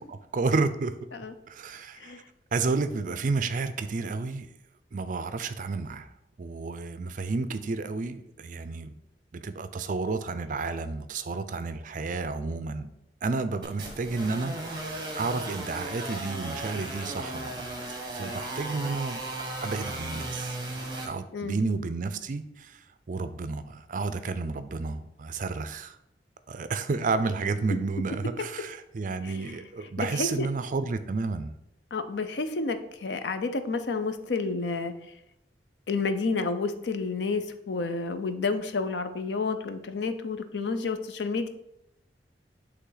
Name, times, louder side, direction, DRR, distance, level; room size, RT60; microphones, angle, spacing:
voice 1, 0.1-0.9 1.5-2.1 2.5-4.5 4.9-6.1 6.4-8.9 9.3-12.9 13.2-17.7 18.1-19.2 19.6-20.6 21.0-22.8 23.1-26.0 26.5-31.5, right 4 dB, 50° right, 11 dB, 0.4 m, -31 dB
sound 1, 13.6-21.1, right 2 dB, 25° right, 1.4 m, -36 dB
voice 2, 29.2-29.6 30.0-30.5 31.9-34.9 35.9-41.5, left 4 dB, 80° left, 9 dB, 0.6 m, -30 dB
8.3 x 3.3 x 3.9 m, 0.85 s
head